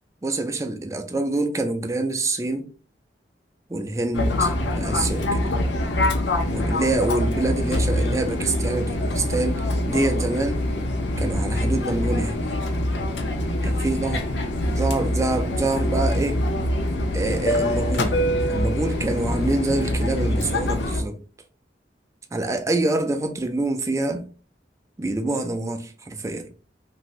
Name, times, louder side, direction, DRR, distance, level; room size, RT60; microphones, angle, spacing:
voice 1, 0.2-2.7 3.7-5.5 6.5-9.6 9.9-10.6 11.2-12.4 13.6-14.3 14.8-16.4 17.1-18.2 18.5-21.2 22.3-24.3 25.0-26.5, right 2 dB, 15° right, 0.4 m, -26 dB
Fixed-wing aircraft airplane, 4.1-21.0, left 1 dB, 75° left, 0.6 m, -24 dB
2.6 x 2.5 x 3.1 m
head